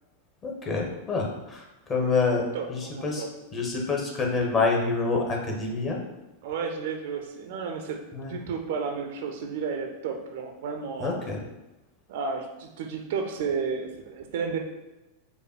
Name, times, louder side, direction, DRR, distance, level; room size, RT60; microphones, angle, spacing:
voice 1, 0.4-3.2 3.5-6.0 8.1-8.3 11.0-11.4, left 4 dB, 25° left, -1 dB, 1.0 m, -27 dB
voice 2, 2.5-3.3 6.4-8.0 8.3-11.2 12.1-14.6, right 5 dB, 55° right, 4 dB, 0.5 m, -32 dB
5.2 x 2.2 x 4.4 m, 1.0 s
figure-of-eight pair, 90°, 0 cm